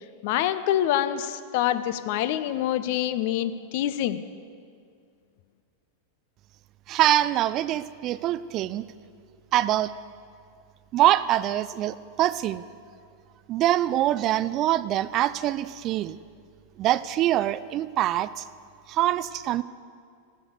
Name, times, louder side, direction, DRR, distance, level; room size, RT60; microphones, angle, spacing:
voice 1, 0.2-4.2, left 12 dB, 50° left, 13 dB, 0.6 m, -26 dB
voice 2, 6.9-8.8 9.5-9.9 10.9-12.6 13.5-16.2 16.8-18.4 18.9-19.6, right 13 dB, 35° right, 16 dB, 0.3 m, -24 dB
14.5 x 7.0 x 6.5 m, 2.2 s
figure-of-eight pair, 90°, 0 cm